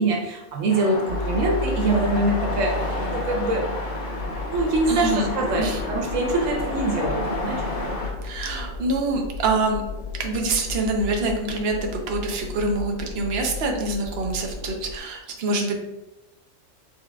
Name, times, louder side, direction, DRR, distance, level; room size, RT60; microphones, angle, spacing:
voice 1, 0.0-2.8 3.0-3.6 4.5-7.6, right 2 dB, 90° right, 1 dB, 1.1 m, -24 dB
sound 1, 0.7-8.1, left 1 dB, 65° left, 1.3 m, -31 dB
sound 2, 1.1-11.7, left 1 dB, 5° right, 0.8 m, -35 dB
sound 3, 4.2-15.0, left 4 dB, 90° left, 0.3 m, -35 dB
voice 2, 4.9-5.8 8.2-9.8 10.2-15.8, right 2 dB, 60° right, 2 dB, 0.9 m, -25 dB
6.2 x 3.6 x 2.3 m, 0.97 s
omnidirectional pair, 1.3 m